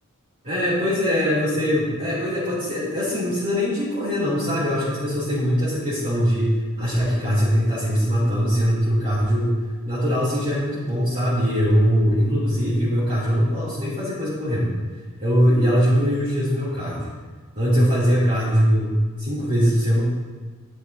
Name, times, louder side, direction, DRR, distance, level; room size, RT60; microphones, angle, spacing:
voice 1, 0.4-9.6 9.9-14.7 15.2-17.1 17.5-18.9 19.2-20.0, equal, 40° right, -12 dB, 2.9 m, -21 dB
12.0 x 9.0 x 2.8 m, 1.5 s
head